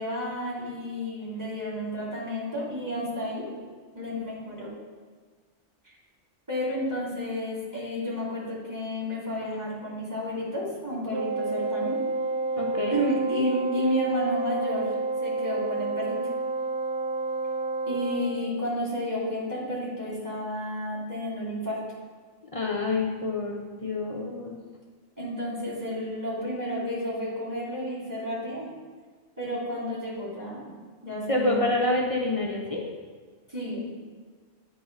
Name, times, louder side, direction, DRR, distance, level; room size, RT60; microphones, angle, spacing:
voice 1, 0.0-3.5 3.9-4.7 6.5-12.0 12.9-14.9 15.2-16.2 17.9-21.8 25.2-28.7 29.4-30.7 31.0-31.7 33.5-33.9, equal, 15° right, -6 dB, 1.9 m, -31 dB
Wind instrument woodwind instrument, 11.1-18.4, right 3 dB, 70° right, 0.9 m, -29 dB
voice 2, 12.6-13.0 22.5-24.6 31.3-32.8, left 2 dB, 35° left, -1 dB, 0.6 m, -27 dB
8.5 x 3.1 x 5.5 m, 1.5 s
omnidirectional pair, 1.3 m